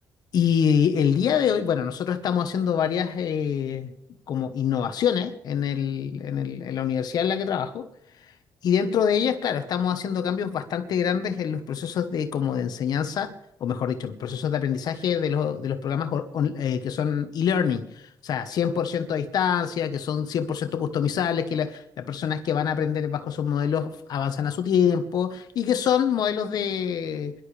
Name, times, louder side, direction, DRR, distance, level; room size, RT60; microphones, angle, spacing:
voice 1, 0.3-3.9 4.3-7.8 8.6-13.3 13.6-27.3, left 8 dB, 65° left, 8 dB, 1.2 m, -25 dB
23.5 x 12.0 x 3.4 m, 0.78 s
cardioid pair, 110°, 7 cm